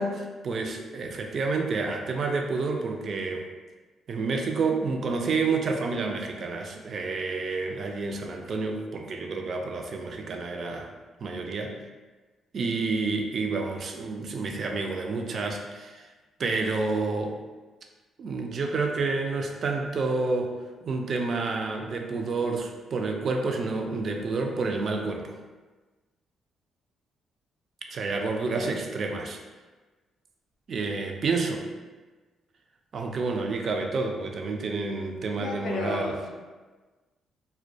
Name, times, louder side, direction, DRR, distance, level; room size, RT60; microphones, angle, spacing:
voice 1, 0.0-3.5 4.1-10.9 11.2-11.7 12.5-16.1 16.4-17.4 18.2-20.6 20.8-25.4 27.9-29.4 30.7-31.6 32.9-36.1, right 3 dB, 55° right, 3 dB, 0.3 m, -29 dB
voice 2, 35.4-36.3, left 3 dB, 75° left, 1 dB, 0.3 m, -34 dB
2.2 x 2.1 x 2.6 m, 1.3 s
cardioid pair, 90°, 0 cm